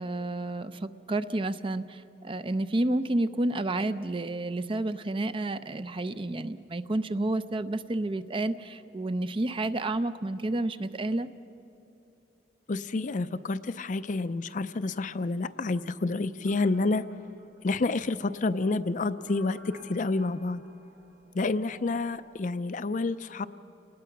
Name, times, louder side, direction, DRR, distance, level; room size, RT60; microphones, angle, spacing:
voice 1, 0.0-11.3, right 2 dB, 30° right, 12 dB, 0.6 m, -30 dB
voice 2, 12.7-17.1 17.6-20.6 21.3-23.5, left 3 dB, 45° left, 13 dB, 0.5 m, -29 dB
sound 1, 16.4-22.5, right 1 dB, 75° right, 2.5 m, -56 dB
29.0 x 19.5 x 5.9 m, 2.8 s
head